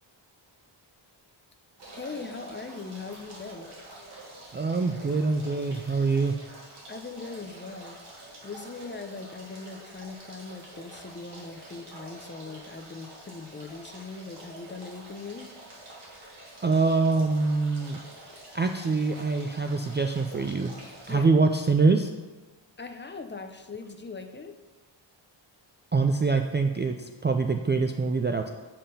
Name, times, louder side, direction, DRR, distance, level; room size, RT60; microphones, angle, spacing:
sound 1, 1.8-21.1, right 1 dB, 55° right, 2.8 m, -47 dB
voice 1, 1.9-3.7 6.9-8.0 8.4-15.5 21.1-21.3 22.8-24.6, left 4 dB, 25° left, 6 dB, 0.7 m, -40 dB
voice 2, 4.5-6.4 16.6-18.0 18.5-20.8 21.1-22.1 25.9-28.5, right 4 dB, 25° right, 5 dB, 0.4 m, -24 dB
8.6 x 5.7 x 5.5 m, 1.2 s
wide cardioid pair, 140°, 47 cm